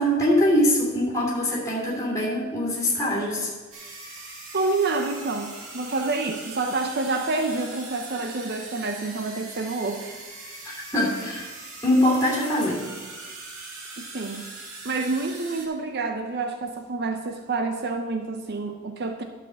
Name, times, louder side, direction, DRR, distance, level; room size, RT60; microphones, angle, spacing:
voice 1, 0.0-3.5 10.6-11.5 11.8-12.8, equal, 15° left, -5 dB, 2.8 m, -23 dB
sound 1, 3.7-15.7, right 3 dB, 70° right, 2.0 m, -41 dB
voice 2, 4.5-10.1 14.0-14.5 14.8-19.2, right 3 dB, 50° right, 6 dB, 0.6 m, -28 dB
11.5 x 5.0 x 6.9 m, 1.3 s
head